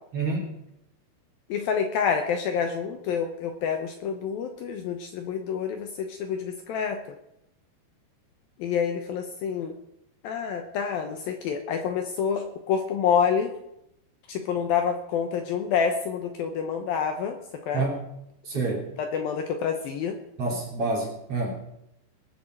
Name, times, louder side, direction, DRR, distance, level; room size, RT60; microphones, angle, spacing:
voice 1, 0.1-0.6 17.7-18.1 18.4-18.9 20.4-21.6, right 3 dB, 35° right, -1 dB, 3.7 m, -28 dB
voice 2, 1.5-7.0 8.6-9.7 10.2-13.5 14.3-17.4 17.7-17.9 19.0-20.2, left 7 dB, 70° left, 5 dB, 2.5 m, -27 dB
20.0 x 6.8 x 7.8 m, 0.80 s
omnidirectional pair, 4.9 m